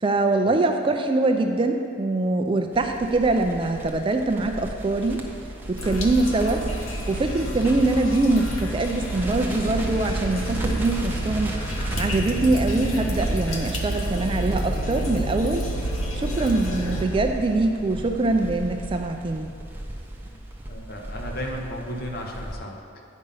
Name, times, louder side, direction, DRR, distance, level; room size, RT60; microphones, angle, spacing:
voice 1, 0.0-5.2 5.7-6.6 7.1-11.5 12.0-15.6 16.2-19.5, right 2 dB, 25° right, 4 dB, 0.4 m, -23 dB
Crackle, 2.7-22.5, right 1 dB, 10° right, 0.7 m, -35 dB
sound 1, 5.8-17.0, right 1 dB, 85° left, 1.1 m, -29 dB
voice 2, 20.6-23.0, equal, 50° left, 0 dB, 1.1 m, -34 dB
9.2 x 5.3 x 5.4 m, 2.4 s
head